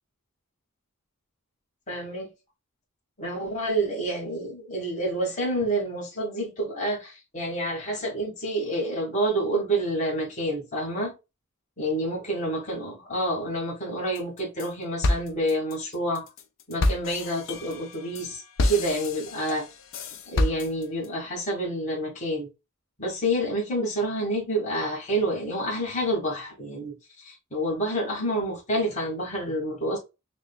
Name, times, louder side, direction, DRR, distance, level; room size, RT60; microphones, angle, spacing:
voice 1, 1.9-2.3 3.2-11.1 11.8-16.3 16.7-19.7 20.3-22.5 23.0-30.0, right 1 dB, 35° left, 1.5 m, -28 dB
sound 1, 14.1-14.7 15.0-21.1, left 2 dB, 65° left, 0.6 m, -28 dB
6.2 x 2.3 x 2.3 m
head